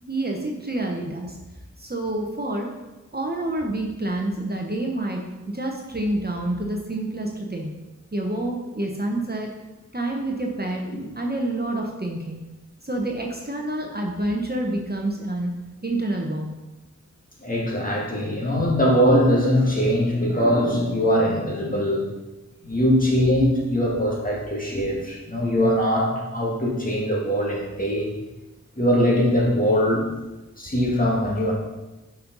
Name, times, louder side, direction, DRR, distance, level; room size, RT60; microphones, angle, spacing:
voice 1, 0.0-1.4 1.8-2.7 3.1-7.7 8.1-9.5 9.9-10.8 11.1-12.4 12.8-15.5 15.8-16.5, right 1 dB, 30° right, 0 dB, 1.1 m, -28 dB
voice 2, 17.4-22.0 22.6-28.1 28.8-30.1 30.6-31.5, equal, 25° left, -4 dB, 2.3 m, -21 dB
9.3 x 5.6 x 4.0 m, 1.1 s
wide cardioid pair, 65°, 31 cm